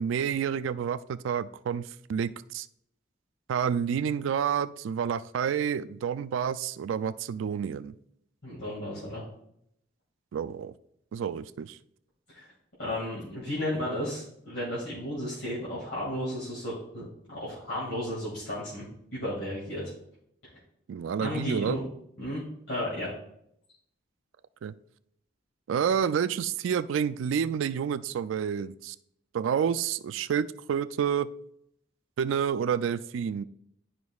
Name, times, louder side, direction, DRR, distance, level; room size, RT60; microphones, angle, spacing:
voice 1, 0.0-2.7 3.5-7.9 10.3-10.7 11.1-11.8 20.9-21.8 24.6-24.7 25.7-29.0 29.3-31.3 32.2-33.4, right 7 dB, 80° right, 14 dB, 0.3 m, -29 dB
voice 2, 8.4-9.2 12.3-12.5 12.8-17.0 17.3-18.8 19.1-19.9 21.2-21.8 22.2-23.1, left 1 dB, 70° left, -7 dB, 2.1 m, -33 dB
11.5 x 5.1 x 2.3 m, 0.74 s
head